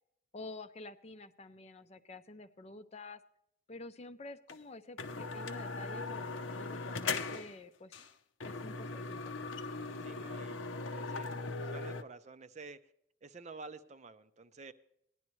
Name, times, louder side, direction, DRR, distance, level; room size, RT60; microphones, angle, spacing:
voice 1, 0.3-3.2 3.7-8.0 8.4-9.4, left 2 dB, 35° left, 11 dB, 0.5 m, -49 dB
sound 1, 4.5-4.6 5.0-7.6 7.9-8.1 8.4-12.0, left 3 dB, 75° left, 0.7 m, -39 dB
voice 2, 10.0-12.8 13.2-14.7, right 4 dB, 35° right, 12 dB, 0.5 m, -50 dB
17.5 x 11.0 x 3.1 m, 0.75 s
head